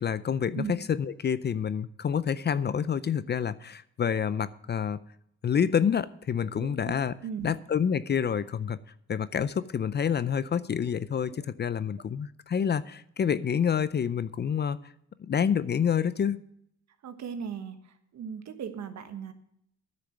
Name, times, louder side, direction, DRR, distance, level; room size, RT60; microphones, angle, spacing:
voice 1, 0.0-5.0 5.4-7.1 7.4-8.8 9.1-14.8 15.2-16.4, left 7 dB, 35° left, 0.5 m, -28 dB
voice 2, 6.5-6.9 7.2-7.5 11.3-11.4 17.0-19.3, right 7 dB, 65° right, 1.4 m, -38 dB
10.0 x 6.5 x 8.9 m
cardioid pair, 90°, 30 cm